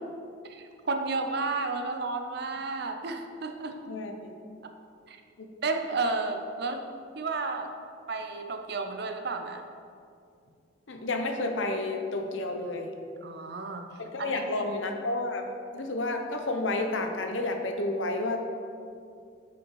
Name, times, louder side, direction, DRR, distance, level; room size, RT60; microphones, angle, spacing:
voice 1, 0.4-3.8 5.1-5.2 5.6-6.9 7.2-7.7 8.1-9.6 13.2-13.8 14.2-14.4, right 3 dB, 55° right, 6 dB, 0.6 m, -32 dB
voice 2, 3.9-4.3 5.4-5.5 10.9-12.9 14.0-15.5 15.7-18.5, left 2 dB, 70° left, 4 dB, 0.8 m, -31 dB
8.0 x 5.1 x 4.7 m, 2.4 s
head